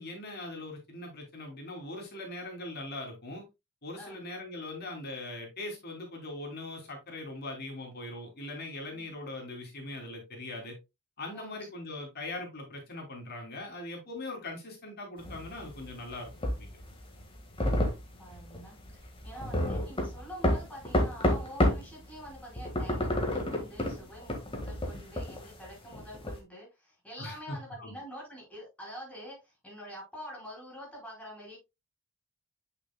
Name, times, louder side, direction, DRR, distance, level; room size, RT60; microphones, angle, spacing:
voice 1, 0.0-3.4 3.8-10.8 11.2-16.7 19.7-19.8 27.2-28.0, left 2 dB, 50° left, 3.0 m, -41 dB
sound 1, 15.2-21.9 22.2-26.4, left 1 dB, 25° left, 1.7 m, -30 dB
voice 2, 18.2-31.6, equal, 5° left, 4.7 m, -46 dB
8.7 x 6.1 x 2.2 m
head